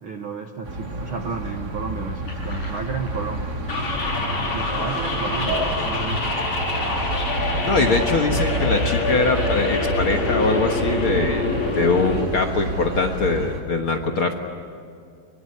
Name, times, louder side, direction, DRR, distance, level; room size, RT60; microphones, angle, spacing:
voice 1, 0.0-3.4 4.4-6.5, right 5 dB, 60° right, 4 dB, 1.4 m, -32 dB
sound 1, 0.6-13.6, right 1 dB, 30° right, 2.5 m, -29 dB
sound 2, 2.2-10.5, equal, 75° left, 9.7 m, -38 dB
sound 3, 3.7-12.3, left 2 dB, 35° left, 4.1 m, -25 dB
voice 2, 7.6-14.3, left 3 dB, 50° left, 3 dB, 1.7 m, -22 dB
23.5 x 23.0 x 9.7 m, 2.4 s
omnidirectional pair, 3.9 m